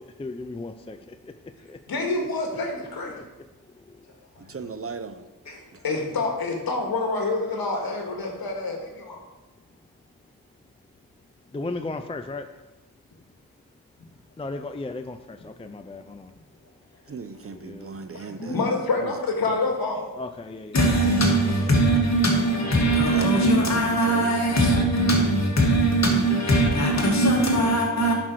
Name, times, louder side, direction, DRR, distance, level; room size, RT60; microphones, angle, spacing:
voice 1, 0.2-1.3 1.7-2.1 3.0-3.2 11.5-12.5 14.4-16.3 17.5-18.0 20.2-20.8, left 2 dB, 15° left, 0.4 m, -36 dB
voice 2, 1.9-3.1 5.8-9.2 18.4-20.1, left 3 dB, 75° left, 2.0 m, -27 dB
voice 3, 4.5-5.2 17.1-18.6 19.0-19.1 19.5-19.6 23.1-23.3 23.6-23.7 24.1-24.4, right 4 dB, 40° right, 0.7 m, -36 dB
voice 4, 20.7-28.1, right 1 dB, 45° left, 2.5 m, -20 dB
11.0 x 6.1 x 4.7 m
wide cardioid pair, 100°, 36 cm